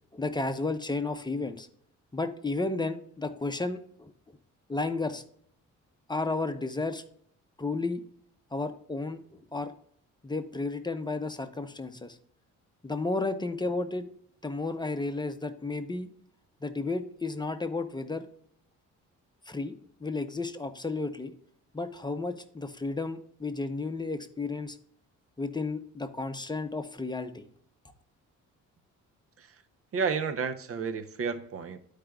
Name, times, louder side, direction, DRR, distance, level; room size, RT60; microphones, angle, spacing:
voice 1, 0.1-1.7 2.1-4.1 4.7-5.2 6.1-7.0 7.6-8.0 8.5-9.2 9.5-9.7 10.2-12.2 12.8-14.1 14.4-16.1 16.6-18.2 19.5-19.7 20.0-21.3 21.7-24.8 25.4-27.4, left 3 dB, 15° left, 0.7 m, -32 dB
voice 2, 29.9-31.8, right 5 dB, 50° right, 0.7 m, -31 dB
13.0 x 5.0 x 2.3 m
cardioid pair, 90°, 30 cm